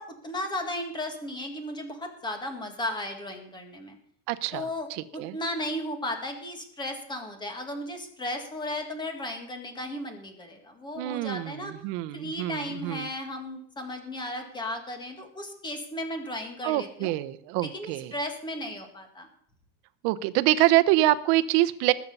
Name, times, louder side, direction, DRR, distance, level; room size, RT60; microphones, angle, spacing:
voice 1, 0.0-4.0 4.5-11.7 12.1-17.1 17.6-19.3, left 1 dB, 10° left, 5 dB, 1.8 m, -35 dB
voice 2, 4.3-5.4 11.0-13.1 16.6-18.1 20.0-21.9, right 16 dB, 50° right, 14 dB, 0.9 m, -25 dB
20.0 x 8.5 x 5.5 m, 0.66 s
cardioid pair, 175°, 44 cm